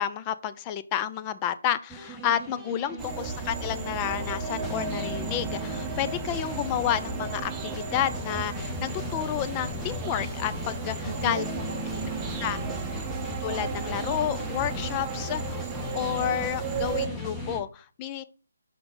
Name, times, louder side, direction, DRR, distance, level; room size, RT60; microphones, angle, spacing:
voice 1, 0.0-11.4 12.4-12.6 13.4-15.6 15.9-18.2, left 10 dB, 20° left, 12 dB, 0.5 m, -30 dB
sound 1, 1.9-17.6, equal, 5° left, 1.1 m, -37 dB
voice 2, 2.7-3.1 11.0-13.0, right 6 dB, 45° right, 3 dB, 0.6 m, -39 dB
sound 2, 3.0-17.1, right 4 dB, 15° right, 0.9 m, -35 dB
5.8 x 5.2 x 3.7 m, 0.37 s
figure-of-eight pair, 150°, 0 cm